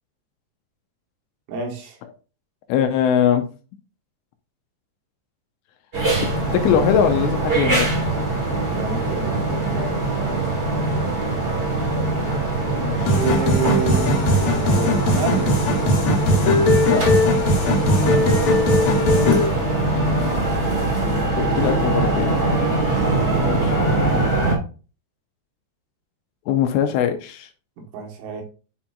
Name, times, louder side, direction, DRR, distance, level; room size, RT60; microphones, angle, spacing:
voice 1, 1.5-2.0 8.6-10.4 13.2-15.5 18.1-18.4 23.0-24.1 27.8-28.4, right 6 dB, 90° right, 1 dB, 4.0 m, -29 dB
voice 2, 2.7-3.4 6.5-7.9 12.8-13.2 16.8-17.0 21.3-22.3 23.4-23.8 26.5-27.5, left 9 dB, 85° left, 5 dB, 2.7 m, -21 dB
sound 1, 5.9-24.5, right 2 dB, 65° right, 0.6 m, -22 dB
sound 2, 13.1-19.5, left 1 dB, 60° left, 2.4 m, -19 dB
9.7 x 4.3 x 2.4 m, 0.36 s
omnidirectional pair, 5.4 m